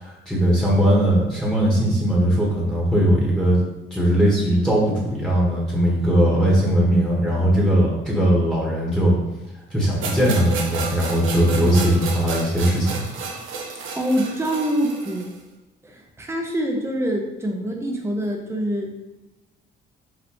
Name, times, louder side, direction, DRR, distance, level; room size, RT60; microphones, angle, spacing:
voice 1, 0.0-3.6 3.9-9.1 9.7-13.0, equal, 5° left, -5 dB, 1.5 m, -19 dB
sound 1, 10.0-15.4, right 5 dB, 85° right, 0.8 m, -31 dB
voice 2, 13.9-15.3 15.8-18.9, equal, 15° right, 1 dB, 0.8 m, -25 dB
5.2 x 3.0 x 3.0 m, 1.0 s
cardioid pair, 90°, 20 cm